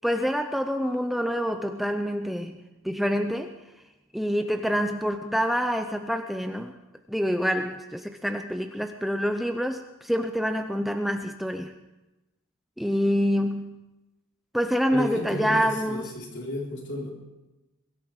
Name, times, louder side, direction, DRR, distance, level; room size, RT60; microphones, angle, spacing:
voice 1, 0.0-3.5 4.1-6.7 7.1-11.8 12.8-13.7 14.5-16.0, equal, ahead, 6 dB, 0.6 m, -27 dB
voice 2, 14.9-17.1, left 1 dB, 55° left, -1 dB, 3.8 m, -33 dB
22.5 x 13.0 x 4.9 m, 1.0 s
head